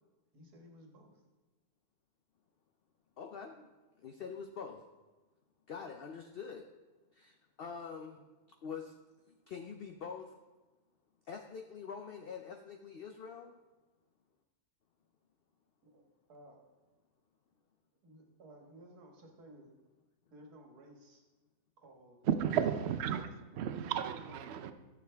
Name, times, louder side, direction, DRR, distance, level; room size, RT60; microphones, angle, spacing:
voice 1, 0.3-1.2 15.8-16.0 16.3-16.7 18.0-19.7 20.3-21.2 21.8-22.2 24.3-24.7, right 1 dB, 80° right, 2.1 m, -56 dB
voice 2, 3.2-3.7 4.0-4.8 5.7-6.6 7.1-8.2 8.6-8.9 9.3-10.3 11.2-13.6, left 6 dB, 55° left, 0.6 m, -45 dB
voice 3, 22.2-24.7, right 8 dB, 60° right, 0.7 m, -33 dB
12.0 x 7.5 x 3.4 m
omnidirectional pair, 1.6 m